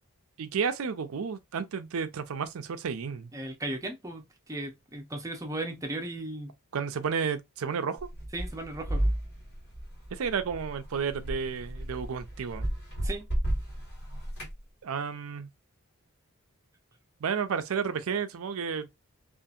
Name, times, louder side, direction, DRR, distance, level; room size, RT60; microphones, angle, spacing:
voice 1, 0.4-3.3 6.7-8.1 10.1-12.7 14.8-15.5 17.2-18.9, right 6 dB, 70° right, 0.4 m, -32 dB
voice 2, 3.3-6.5 8.3-9.0 13.0-13.3, right 2 dB, 15° right, 0.6 m, -36 dB
sound 1, 8.0-14.6, right 1 dB, 50° left, 1.8 m, -33 dB
2.7 x 2.5 x 2.4 m
head